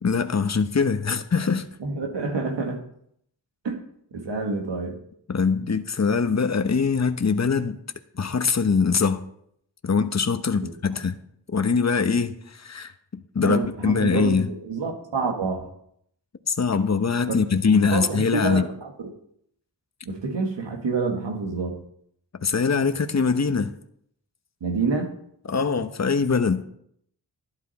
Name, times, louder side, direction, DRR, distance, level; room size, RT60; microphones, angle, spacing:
voice 1, 0.0-1.7 5.3-7.8 8.2-9.3 9.8-11.1 11.5-14.5 16.5-18.6 22.4-23.7 25.5-26.6, left 5 dB, 40° left, 9 dB, 1.0 m, -23 dB
voice 2, 1.8-2.9 3.6-3.8 4.1-5.0 10.6-11.0 13.4-15.7 17.3-17.4 17.9-18.9 20.1-21.8 24.6-25.2, right 4 dB, 90° right, 3 dB, 2.0 m, -28 dB
12.0 x 11.0 x 4.2 m, 0.69 s
cardioid pair, 45°, 42 cm